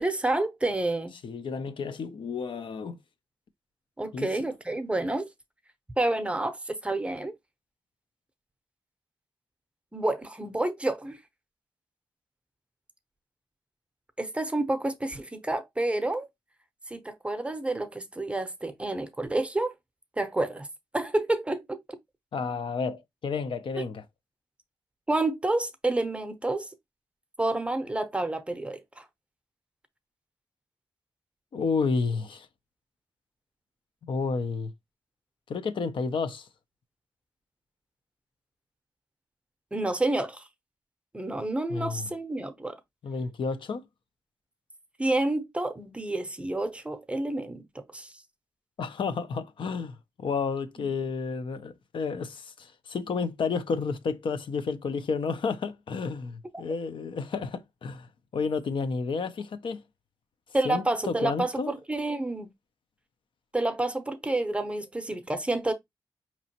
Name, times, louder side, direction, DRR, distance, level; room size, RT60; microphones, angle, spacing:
voice 1, 0.0-1.1 4.0-5.3 6.0-7.3 9.9-11.2 14.2-16.3 16.9-19.7 20.2-20.7 20.9-21.8 23.8-23.9 25.1-26.7 27.4-29.0 39.7-40.4 41.1-42.8 45.0-48.1 50.8-50.9 60.5-62.5 63.5-65.7, right 2 dB, 15° right, 0.6 m, -29 dB
voice 2, 1.2-3.0 4.1-4.3 22.3-24.0 31.5-32.5 34.0-34.7 35.5-36.5 41.7-42.1 43.0-43.8 48.8-58.1 58.3-59.8 60.6-61.7, left 5 dB, 70° left, 0.5 m, -31 dB
5.1 x 2.9 x 2.8 m
wide cardioid pair, 125°, 9 cm